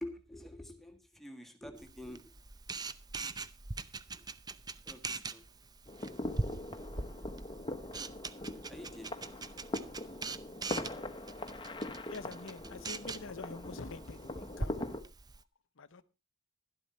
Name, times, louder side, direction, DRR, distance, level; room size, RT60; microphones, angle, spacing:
voice 1, 0.0-2.3 4.8-5.4 8.7-9.3 12.6-12.9 14.6-14.8, left 1 dB, ahead, 1.8 m, -47 dB
Camera, 1.8-15.4, right 3 dB, 20° right, 0.6 m, -43 dB
sound 1, 5.9-15.0, left 1 dB, 25° left, 1.1 m, -42 dB
voice 2, 12.1-14.8 15.8-16.0, left 3 dB, 65° left, 0.9 m, -46 dB
12.0 x 12.0 x 4.2 m
head